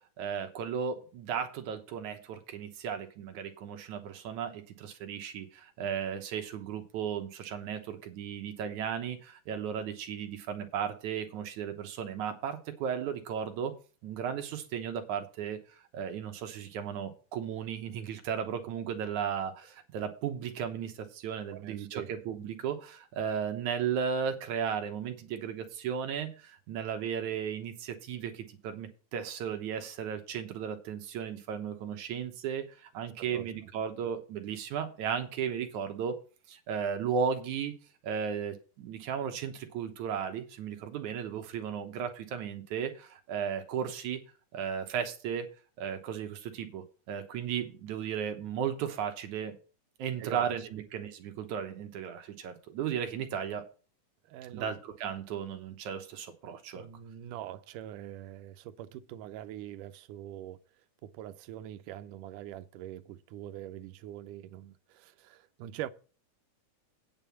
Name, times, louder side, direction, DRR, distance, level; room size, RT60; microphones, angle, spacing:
voice 1, 0.2-13.7 14.0-15.6 15.9-36.2 36.5-37.7 38.0-44.2 44.5-45.5 45.8-49.5 50.0-53.7 54.5-56.9, right 7 dB, 75° right, 2.4 m, -35 dB
voice 2, 21.5-22.1 33.2-33.5 50.2-50.9 54.2-54.8 56.7-60.6 61.0-65.9, right 12 dB, 90° right, 2.2 m, -43 dB
9.3 x 5.5 x 7.1 m
omnidirectional pair, 3.6 m